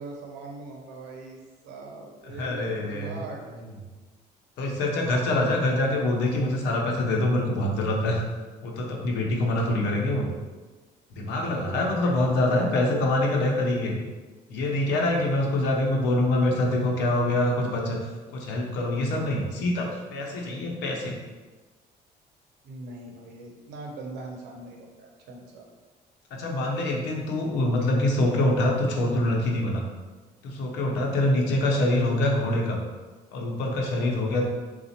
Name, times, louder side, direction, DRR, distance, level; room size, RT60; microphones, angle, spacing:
voice 1, 0.0-1.4 1.6-3.4 11.4-13.0 22.6-25.7, right 2 dB, 90° right, 0 dB, 0.8 m, -41 dB
voice 2, 2.2-3.2 4.6-8.2 8.6-10.3 11.1-14.0 14.5-21.2 26.3-29.9 30.4-32.8 33.3-34.4, left 1 dB, 90° left, 0 dB, 0.8 m, -25 dB
3.9 x 2.4 x 4.2 m, 1.3 s
cardioid pair, 110°, 17 cm